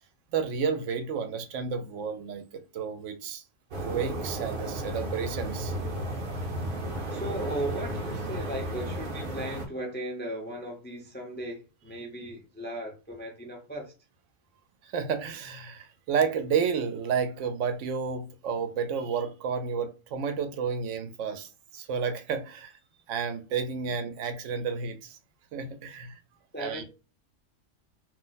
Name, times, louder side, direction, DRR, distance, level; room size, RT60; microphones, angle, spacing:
voice 1, 0.3-3.4 3.8-5.8 14.8-22.8 23.1-25.2 25.5-26.2 26.6-26.8, right 6 dB, 85° right, 0.9 m, -31 dB
sound 1, 3.7-9.7, right 1 dB, 55° right, 0.7 m, -33 dB
voice 2, 6.2-6.5 7.1-13.9 26.5-26.8, right 1 dB, 15° left, 0.3 m, -37 dB
2.5 x 2.0 x 3.9 m
omnidirectional pair, 1.2 m